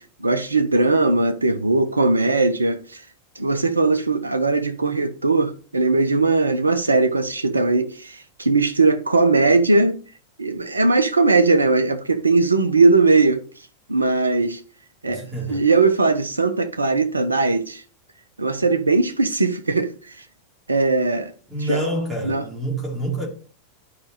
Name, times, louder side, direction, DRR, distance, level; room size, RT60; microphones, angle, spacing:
voice 1, 0.0-3.0 3.4-10.0 10.4-13.4 13.9-14.6 15.0-15.2 15.5-17.8 18.4-19.9 20.7-21.3 21.7-21.8 22.2-22.4, right 3 dB, 80° right, 0.8 m, -19 dB
voice 2, 15.0-15.7 21.5-23.3, right 1 dB, 15° right, 3.4 m, -27 dB
11.0 x 5.1 x 3.1 m
figure-of-eight pair, 90°, 0 cm